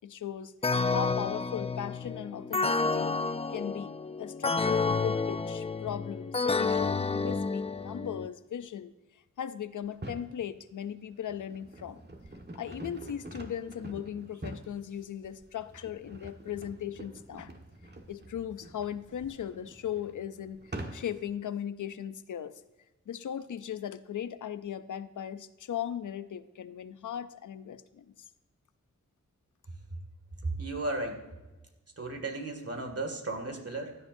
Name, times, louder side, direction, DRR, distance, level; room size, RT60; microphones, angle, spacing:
voice 1, 0.0-0.5 0.9-3.2 3.5-8.9 9.4-12.0 12.5-17.5 18.1-22.6 23.1-28.1, left 9 dB, 90° left, 13 dB, 0.5 m, -38 dB
sound 1, 0.6-8.3, left 4 dB, 20° left, 0.4 m, -30 dB
sound 2, 9.8-10.3 11.0-21.3, right 1 dB, 35° right, 1.4 m, -46 dB
voice 2, 30.4-31.2 32.0-34.0, right 2 dB, 55° right, 4 dB, 2.2 m, -34 dB
16.0 x 11.0 x 2.7 m, 1.1 s
wide cardioid pair, 70°, 30 cm